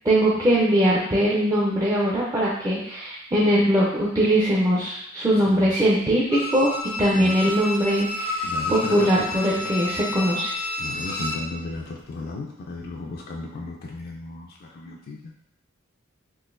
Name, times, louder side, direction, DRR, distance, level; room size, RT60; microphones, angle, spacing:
voice 1, 0.0-6.7 7.0-10.5, equal, 15° right, -7 dB, 0.4 m, -21 dB
voice 2, 5.3-5.8 7.1-7.3 8.4-9.8 10.8-15.3, left 3 dB, 45° left, -1 dB, 0.3 m, -35 dB
Bowed string instrument, 6.3-11.5 11.9-12.0, left 2 dB, 80° left, 0.7 m, -30 dB
3.8 x 2.5 x 2.5 m, 0.76 s
head